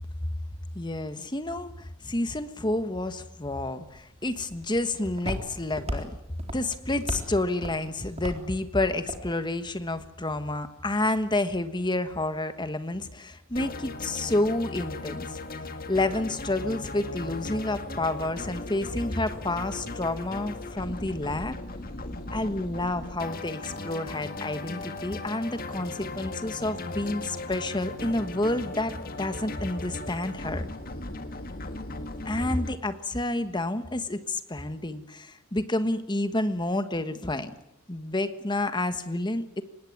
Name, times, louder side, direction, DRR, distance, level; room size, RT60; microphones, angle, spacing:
voice 1, 0.7-6.2 6.5-15.4 15.9-21.6 22.3-30.7 32.2-37.5 37.9-39.6, left 2 dB, 20° left, 10 dB, 1.4 m, -29 dB
Walk footsteps, 3.8-10.0, equal, 30° right, 3.9 m, -37 dB
sound 1, 13.6-32.8, left 2 dB, 45° left, 1.8 m, -37 dB
25.5 x 20.0 x 9.5 m, 0.82 s
head